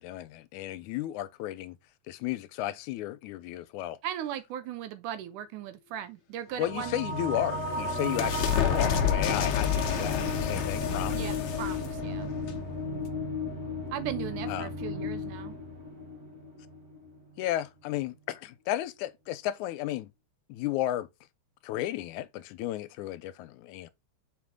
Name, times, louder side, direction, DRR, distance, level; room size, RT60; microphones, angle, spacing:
voice 1, 0.0-1.8 2.1-4.0 6.6-11.2 14.5-14.7 17.4-20.1 20.5-21.1 21.6-23.9, left 13 dB, 90° left, 2.1 m, -33 dB
voice 2, 4.0-7.0 11.1-12.3 13.9-15.6, right 11 dB, 90° right, 2.4 m, -37 dB
sound 1, 6.5-17.4, left 1 dB, 50° right, 1.1 m, -35 dB
sound 2, 7.0-13.5, left 9 dB, 65° left, 1.4 m, -30 dB
6.0 x 5.0 x 3.6 m
omnidirectional pair, 3.4 m